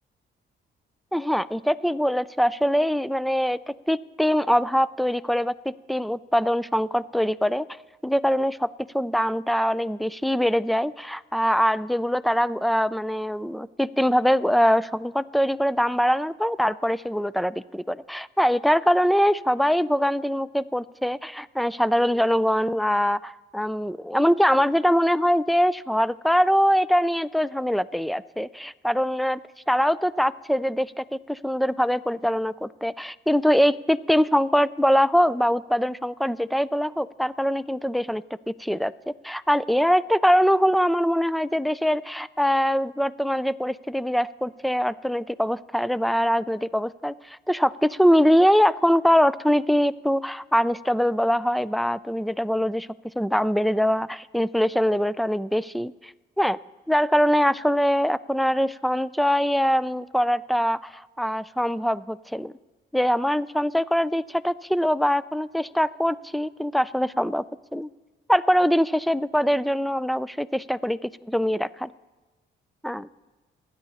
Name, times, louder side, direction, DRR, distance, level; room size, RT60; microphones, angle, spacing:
voice 1, 1.1-7.7 8.0-29.4 29.7-38.9 39.2-52.9 53.2-56.1 56.4-56.6 56.9-62.5 62.9-67.4 67.7-67.9 68.3-71.9 72.8-73.1, equal, ahead, 18 dB, 0.4 m, -23 dB
28.0 x 10.0 x 4.2 m, 1.2 s
cardioid pair, 90°, 20 cm